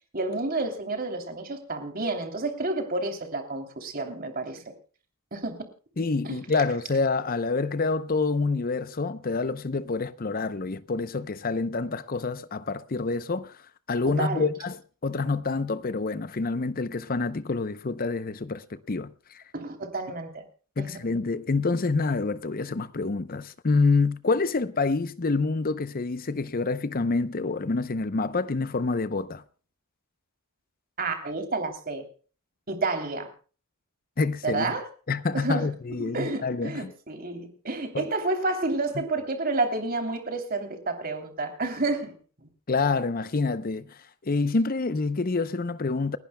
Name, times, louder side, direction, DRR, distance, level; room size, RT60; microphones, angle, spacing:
voice 1, 0.1-4.6 5.3-5.7 6.2-6.4 14.0-14.5 19.5-20.4 20.8-21.0 31.0-32.1 32.7-33.3 34.4-34.9 35.3-42.1, right 2 dB, 40° right, 3.0 m, -30 dB
voice 2, 6.0-13.6 13.9-19.4 20.8-29.4 34.2-34.7 35.1-36.9 37.9-38.1 42.7-46.2, left 3 dB, 40° left, 0.6 m, -27 dB
30.0 x 11.5 x 2.2 m
head